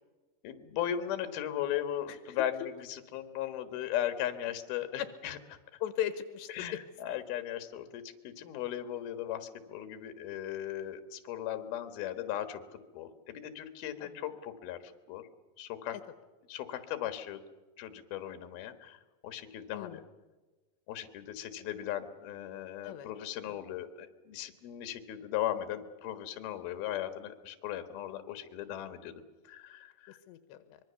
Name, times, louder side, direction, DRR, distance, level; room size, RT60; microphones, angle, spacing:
voice 1, 0.4-5.4 6.5-15.3 15.6-16.0 16.5-17.4 17.8-20.0 20.9-29.1 29.4-30.2, left 11 dB, 65° left, 9 dB, 3.3 m, -37 dB
voice 2, 5.8-6.8 14.0-14.1 19.7-20.0 22.8-23.1 30.3-30.8, left 11 dB, 85° left, 11 dB, 3.2 m, -37 dB
25.0 x 23.0 x 7.0 m, 1.2 s
omnidirectional pair, 4.9 m